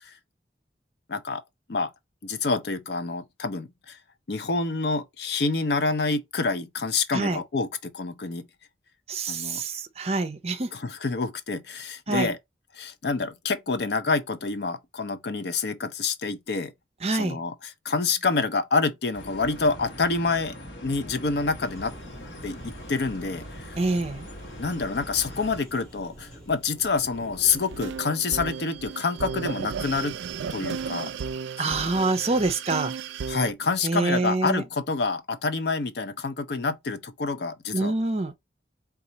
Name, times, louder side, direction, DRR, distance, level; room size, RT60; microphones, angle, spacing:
voice 1, 1.1-1.4 1.7-1.9 2.2-4.0 4.3-8.5 9.3-9.6 10.7-12.4 12.7-16.7 17.1-20.6 20.8-21.9 22.4-23.8 24.6-30.1 30.5-31.1 31.7-31.8 33.3-37.9, left 4 dB, 65° left, 0.6 m, -27 dB
voice 2, 9.1-10.7 12.1-12.3 17.0-17.4 23.8-24.3 31.6-32.9 33.8-34.6 37.7-38.3, right 3 dB, 35° right, 0.5 m, -26 dB
sound 1, 19.1-25.6, equal, 85° left, 1.0 m, -41 dB
sound 2, 21.6-28.0, equal, 5° left, 2.0 m, -48 dB
sound 3, 27.5-33.5, right 6 dB, 85° right, 0.4 m, -34 dB
4.2 x 2.4 x 3.9 m
head